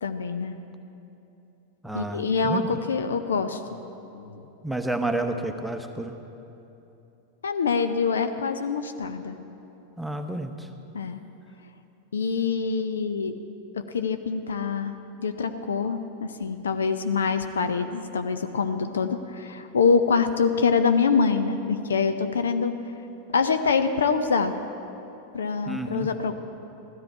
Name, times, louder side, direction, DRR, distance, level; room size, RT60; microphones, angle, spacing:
voice 1, 0.0-0.5 1.9-3.8 4.1-4.4 7.4-9.4 10.9-11.2 12.1-13.3 13.9-14.9 15.2-22.7 23.3-24.5 25.3-26.4, left 5 dB, 70° left, 9 dB, 0.6 m, -25 dB
voice 2, 1.8-2.7 4.6-6.1 10.0-10.7 25.7-26.1, right 2 dB, 5° right, 5 dB, 0.8 m, -30 dB
15.5 x 13.0 x 4.6 m, 3.0 s
figure-of-eight pair, 90°, 0 cm